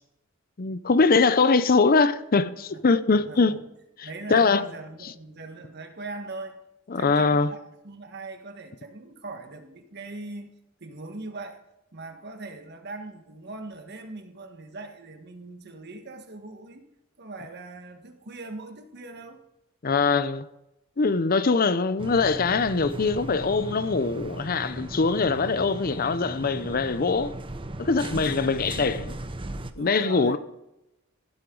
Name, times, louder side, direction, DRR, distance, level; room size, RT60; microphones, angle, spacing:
voice 1, 0.6-3.6 4.3-4.7 6.9-7.5 19.8-20.4 21.0-27.4 27.8-29.1 29.8-30.4, left 4 dB, 45° left, 0.6 m, -22 dB
voice 2, 3.2-3.6 4.0-6.6 6.9-10.5 10.8-11.6 11.9-16.9 17.2-19.4 21.0-21.1 25.4-26.2 29.7-30.4, right 3 dB, 55° right, 1.5 m, -41 dB
sound 1, 22.0-29.7, right 1 dB, 25° right, 0.8 m, -37 dB
16.0 x 10.5 x 3.9 m
head